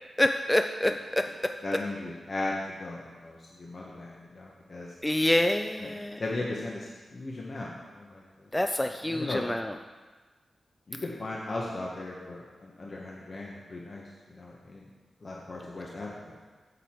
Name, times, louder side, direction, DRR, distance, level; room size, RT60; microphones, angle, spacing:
voice 1, 0.2-1.8 5.0-6.2 8.5-9.7, left 1 dB, 15° left, 6 dB, 0.4 m, -27 dB
voice 2, 1.6-2.5 2.8-4.9 5.8-5.9 6.2-8.2 9.0-9.4 10.9-14.0 14.3-14.8 15.2-16.1, left 2 dB, 55° left, -3 dB, 1.2 m, -37 dB
8.2 x 7.5 x 4.4 m, 1.3 s
cardioid pair, 45°, 0 cm